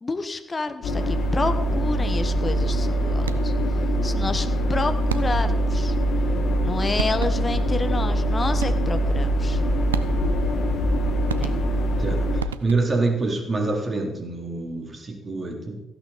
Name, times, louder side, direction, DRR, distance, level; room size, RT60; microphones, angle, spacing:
voice 1, 0.0-3.5 4.0-5.9 6.6-9.6 11.3-11.6, left 3 dB, 30° left, 9 dB, 1.3 m, -29 dB
sound 1, 0.8-12.4, equal, 60° left, 1.8 m, -23 dB
sound 2, 3.2-3.7 5.1-5.6 6.6-6.7 7.0-7.6 8.6-9.1 9.9-10.5 11.3-12.0 12.4-13.1, right 8 dB, 85° right, 0.4 m, -34 dB
voice 2, 12.0-15.8, right 3 dB, 35° right, 1 dB, 3.8 m, -26 dB
15.5 x 11.5 x 4.2 m, 0.90 s
figure-of-eight pair, 40°, 0 cm